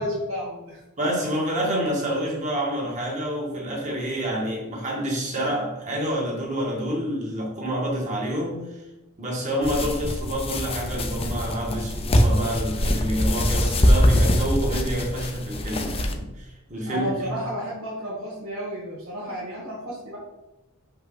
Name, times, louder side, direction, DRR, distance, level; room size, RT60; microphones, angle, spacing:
voice 1, 0.0-0.8 16.9-20.2, equal, 80° right, -7 dB, 2.0 m, -31 dB
voice 2, 1.0-8.8 9.2-17.3, equal, 35° right, -3 dB, 2.2 m, -28 dB
sound 1, 9.6-16.1, equal, 25° left, 0.7 m, -23 dB
6.7 x 5.5 x 4.1 m, 1.0 s
head